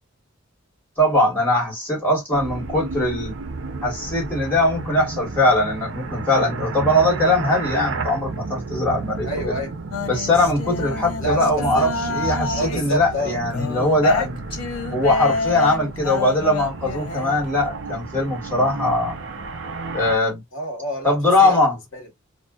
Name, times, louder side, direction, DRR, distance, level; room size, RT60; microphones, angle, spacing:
voice 1, 1.0-3.3 3.8-9.6 10.1-14.4 14.9-19.1 19.9-20.4 21.0-21.8, left 1 dB, 10° left, 1.4 m, -21 dB
sound 1, 2.3-20.2, right 3 dB, 65° right, 0.6 m, -32 dB
voice 2, 9.2-9.8 11.2-11.9 12.5-13.4 20.5-21.6 21.9-22.1, equal, 65° left, 1.2 m, -28 dB
sound 2, 9.9-12.9 13.5-17.4, left 3 dB, 80° left, 0.5 m, -28 dB
2.5 x 2.2 x 2.3 m
head